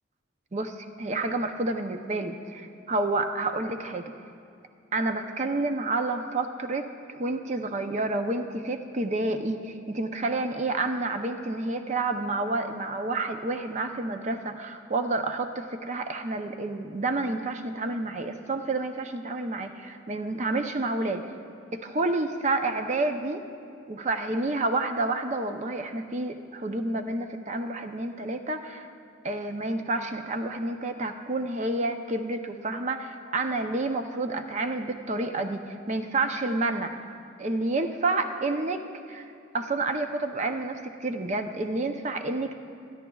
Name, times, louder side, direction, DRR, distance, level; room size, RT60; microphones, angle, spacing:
voice 1, 0.5-4.1 4.9-21.2 21.7-23.4 23.9-28.9 29.2-37.0 37.4-42.5, right 2 dB, 35° right, 6 dB, 0.6 m, -29 dB
26.5 x 10.0 x 2.3 m, 2.5 s
head